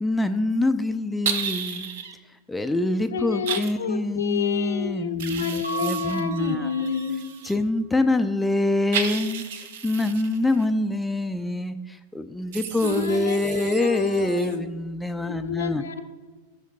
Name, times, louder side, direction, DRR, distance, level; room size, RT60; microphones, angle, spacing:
voice 1, 0.0-1.9 2.5-6.7 7.4-15.8, left 2 dB, 5° left, 8 dB, 0.3 m, -25 dB
sound 1, 1.3-2.1 3.5-3.7 5.2-7.6 8.9-10.7 12.5-14.6, right 7 dB, 55° right, 0.6 m, -33 dB
voice 2, 3.1-7.3 12.8-14.6 15.3-16.0, left 6 dB, 65° left, 8 dB, 0.6 m, -29 dB
Mallet percussion, 5.6-7.4, right 5 dB, 75° right, 1.3 m, -35 dB
12.5 x 6.3 x 2.2 m, 1.4 s
figure-of-eight pair, 90°, 0 cm